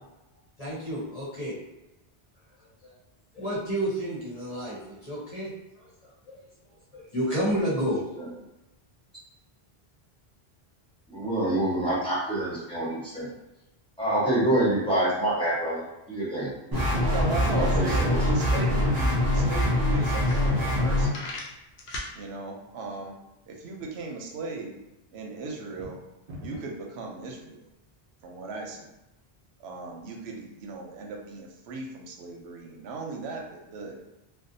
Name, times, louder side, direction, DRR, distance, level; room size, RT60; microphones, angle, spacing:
voice 1, 0.6-1.5 2.8-2.9 3.3-5.5 6.3-6.4 6.9-8.0, equal, 40° left, -7 dB, 0.9 m, -30 dB
voice 2, 11.1-13.3 14.0-15.8 16.1-16.5 17.5-18.6, right 1 dB, 5° left, -9 dB, 0.9 m, -26 dB
sound 1, 16.7-21.1, left 1 dB, 30° right, 0.4 m, -24 dB
voice 3, 17.1-21.2 22.1-23.1 23.5-24.7 25.1-26.0 26.4-27.6 28.2-28.9 29.6-33.9, right 3 dB, 85° right, 0 dB, 0.8 m, -37 dB
sound 2, 20.2-20.8 21.1-22.1, left 2 dB, 75° left, 0.8 m, -37 dB
sound 3, 25.6-26.9, equal, 55° right, 0.7 m, -42 dB
2.6 x 2.1 x 2.6 m, 0.95 s
omnidirectional pair, 1.1 m